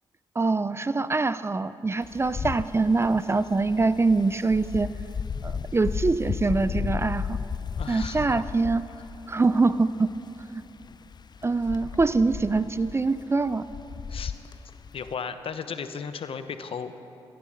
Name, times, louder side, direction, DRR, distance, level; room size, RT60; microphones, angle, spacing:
voice 1, 0.4-4.9 5.4-7.4 7.9-8.8 9.3-10.1 10.5-10.6 11.4-13.7, right 3 dB, 25° right, 15 dB, 0.4 m, -24 dB
Wind, 2.0-15.1, left 6 dB, 45° left, 0.5 m, -35 dB
voice 2, 7.8-8.5 8.9-9.0 14.1-14.3 14.9-17.0, left 6 dB, 60° left, 10 dB, 0.8 m, -35 dB
15.5 x 10.0 x 6.4 m, 3.0 s
cardioid pair, 60°, 10 cm